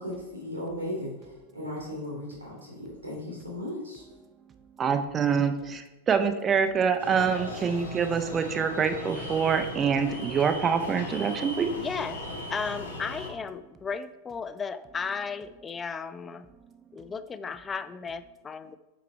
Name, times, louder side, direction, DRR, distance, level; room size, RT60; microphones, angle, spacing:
voice 1, 0.0-4.0, left 1 dB, 85° right, -4 dB, 2.0 m, -36 dB
voice 2, 4.8-11.7, right 6 dB, 25° right, 8 dB, 0.7 m, -26 dB
sound 1, 7.0-13.3, left 1 dB, 70° left, 1.5 m, -38 dB
voice 3, 11.7-12.2 12.5-16.5 16.9-18.8, left 5 dB, 20° left, 13 dB, 0.4 m, -35 dB
6.9 x 4.8 x 4.4 m, 1.1 s
figure-of-eight pair, 90°, 0 cm